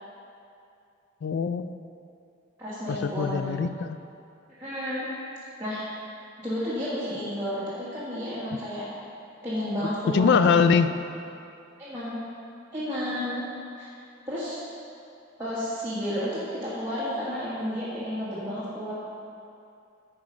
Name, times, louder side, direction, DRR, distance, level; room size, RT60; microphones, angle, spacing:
voice 1, 1.2-1.7 2.9-4.0 9.8-10.9, left 5 dB, 55° left, 11 dB, 0.3 m, -23 dB
voice 2, 2.6-3.5 4.6-5.1 5.6-5.8 6.4-8.9 9.4-10.6 11.8-12.2 12.7-13.5 13.7-13.9 14.3-14.6 15.4-18.9, equal, 15° right, -11 dB, 1.6 m, -31 dB
9.9 x 4.9 x 5.2 m, 2.6 s
head